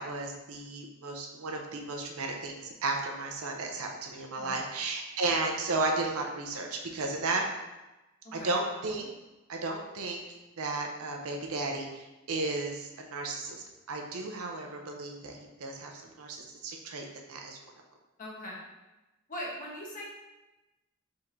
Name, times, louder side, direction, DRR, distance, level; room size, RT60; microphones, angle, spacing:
voice 1, 0.0-7.5 8.3-9.1 9.5-10.2 10.6-17.6, right 3 dB, 75° right, 2 dB, 0.6 m, -34 dB
voice 2, 8.2-8.6 18.2-18.6 19.3-20.0, equal, 40° left, -4 dB, 1.1 m, -40 dB
4.6 x 3.7 x 2.6 m, 1.1 s
head